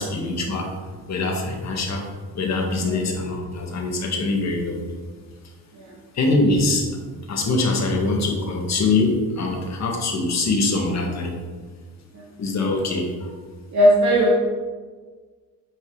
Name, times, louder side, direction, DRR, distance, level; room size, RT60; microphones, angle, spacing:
voice 1, 0.0-2.1 2.3-4.9 6.1-6.9 7.3-11.4 12.4-13.4, left 2 dB, 50° left, 1 dB, 1.9 m, -23 dB
voice 2, 13.7-14.4, equal, 50° right, -3 dB, 1.6 m, -17 dB
9.2 x 5.5 x 4.0 m, 1.4 s
cardioid pair, 110°, 36 cm